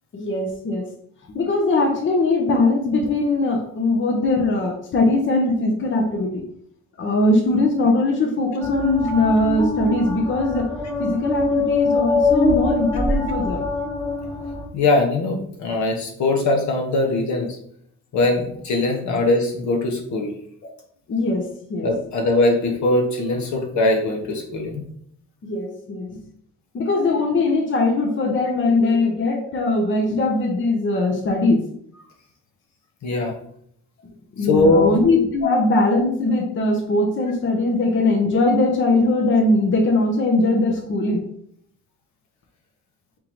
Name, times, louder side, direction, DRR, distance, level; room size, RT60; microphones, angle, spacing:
voice 1, 0.1-0.9 1.3-6.4 7.0-10.7 11.0-13.6 20.6-20.7 21.1-21.9 25.4-26.2 26.7-31.6 34.4-41.2, left 2 dB, 40° left, 1 dB, 0.8 m, -20 dB
sound 1, 8.6-14.6, left 2 dB, 10° left, 1.6 m, -23 dB
voice 2, 14.7-17.6 18.1-20.3 21.8-24.9 33.0-33.3 34.4-34.9 35.4-35.5, left 2 dB, 70° left, 2 dB, 1.1 m, -21 dB
3.7 x 3.6 x 3.0 m, 0.67 s
cardioid pair, 90°, 30 cm